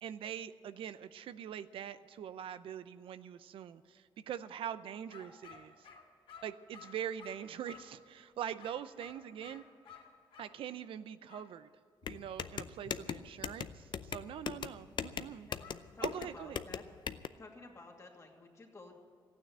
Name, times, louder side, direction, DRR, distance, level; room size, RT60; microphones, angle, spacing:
voice 1, 0.0-5.9 6.4-9.6 10.4-11.7 12.1-15.5 16.0-16.6, right 9 dB, 85° right, 13 dB, 0.6 m, -43 dB
sound 1, 5.1-8.0 8.6-10.6 11.3-11.5 15.6-16.2, left 6 dB, 85° left, 2.6 m, -55 dB
sound 2, 12.0-17.3, left 7 dB, 55° left, 0.6 m, -40 dB
voice 2, 15.5-16.8 17.4-19.0, left 3 dB, 35° left, 1 dB, 2.4 m, -53 dB
14.5 x 9.4 x 9.3 m, 2.2 s
cardioid pair, 100°, 9 cm